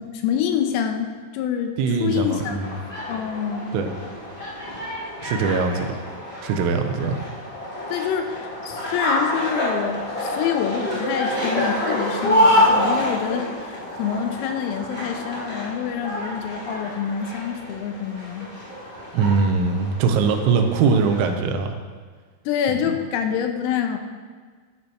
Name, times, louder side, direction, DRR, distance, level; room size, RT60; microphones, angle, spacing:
voice 1, 0.0-2.6 3.1-3.8 7.9-18.5 22.5-24.0, left 8 dB, 85° left, 5 dB, 3.6 m, -26 dB
voice 2, 1.8-2.7 3.7-3.9 5.2-6.0 6.4-7.2 19.1-21.8 22.7-22.9, right 5 dB, 85° right, 5 dB, 3.4 m, -22 dB
sound 1, 2.1-21.3, left 1 dB, 20° left, 1.8 m, -27 dB
13.5 x 12.5 x 3.0 m, 1.5 s
omnidirectional pair, 5.8 m